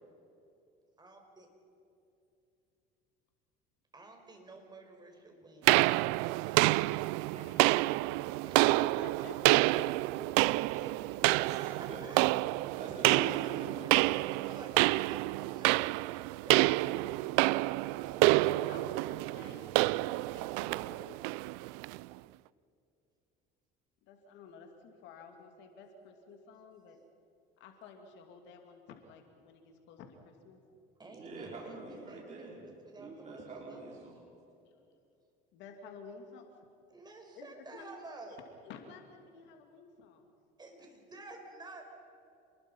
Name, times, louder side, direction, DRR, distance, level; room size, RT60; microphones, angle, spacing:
voice 1, 1.0-1.5 3.9-6.0 8.5-9.8 10.8-10.9 11.5-12.2 13.8-16.9 26.1-26.2 31.0-34.0 36.9-38.4 40.6-41.8, right 2 dB, 20° right, 3 dB, 5.4 m, -52 dB
sound 1, 5.7-22.0, right 21 dB, 85° right, 0.4 m, -28 dB
voice 2, 7.3-8.5 10.2-10.3 10.6-10.8 11.4-12.1 12.8-14.1 31.1-32.6 33.0-34.2, right 3 dB, 35° right, -3 dB, 5.0 m, -46 dB
voice 3, 8.6-9.8 18.7-19.8 20.1-21.2 24.1-27.0 27.6-30.6 35.5-36.5 37.4-37.9 38.3-40.3, left 5 dB, 70° left, 4 dB, 2.7 m, -52 dB
29.0 x 21.5 x 5.6 m, 2.6 s
supercardioid pair, 100°, 19 cm